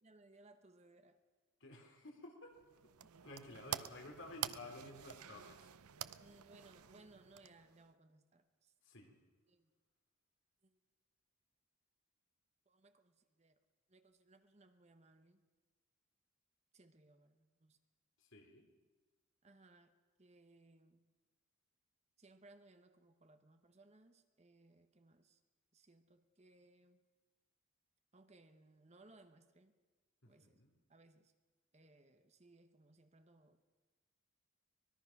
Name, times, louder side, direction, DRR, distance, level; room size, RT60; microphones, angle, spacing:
voice 1, 0.0-1.2 3.0-3.1 6.2-8.7 9.5-9.7 10.6-10.8 12.7-13.5 13.9-15.5 16.7-17.8 19.4-21.1 22.2-25.4 25.7-27.1 28.1-29.7 30.3-30.6 30.9-31.3 31.7-33.6, right 2 dB, 30° right, 9 dB, 1.0 m, -65 dB
voice 2, 1.6-2.6 3.2-5.7 6.0-6.1 8.8-9.2 18.2-18.7 30.2-30.8, left 2 dB, 60° left, 2 dB, 3.5 m, -53 dB
sound 1, 2.5-7.9, right 10 dB, 90° right, 0.7 m, -48 dB
24.0 x 21.0 x 6.0 m, 1.3 s
head